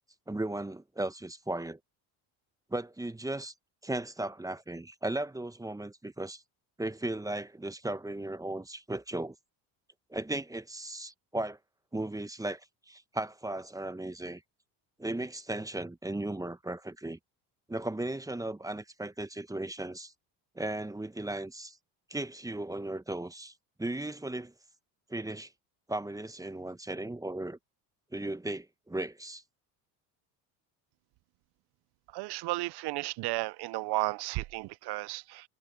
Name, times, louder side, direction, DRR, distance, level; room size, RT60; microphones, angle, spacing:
voice 1, 0.3-1.8 2.7-3.5 3.8-6.4 6.8-9.3 10.1-11.6 11.9-12.6 12.9-14.4 15.0-17.2 17.7-20.1 20.5-21.8 22.1-23.5 23.8-24.5 25.1-25.5 25.9-27.6 28.1-29.4, right 2 dB, 10° right, 1.0 m, -36 dB
voice 2, 32.1-35.4, right 20 dB, 60° right, 0.7 m, -33 dB
supercardioid pair, 85°, 44 cm